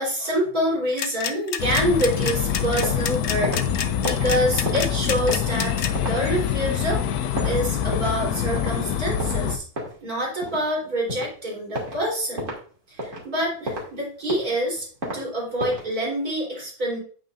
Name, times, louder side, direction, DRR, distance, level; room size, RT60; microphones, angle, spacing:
voice 1, 0.0-7.0 7.4-9.6 10.0-12.5 12.9-14.9 15.1-17.0, equal, 70° right, -3 dB, 4.2 m, -26 dB
sound 1, 0.9-5.9, left 8 dB, 55° left, 0.9 m, -28 dB
sound 2, 1.6-9.6, left 9 dB, 80° left, 1.2 m, -25 dB
sound 3, 2.2-3.1 3.3-8.3 8.6-8.8 9.2-10.7 11.1-11.3 11.7-12.0 12.4-12.6 13.0-13.9 14.2-15.2 15.6-15.9, equal, 55° right, 2.6 m, -32 dB
8.8 x 8.2 x 2.5 m, 0.43 s
omnidirectional pair, 1.6 m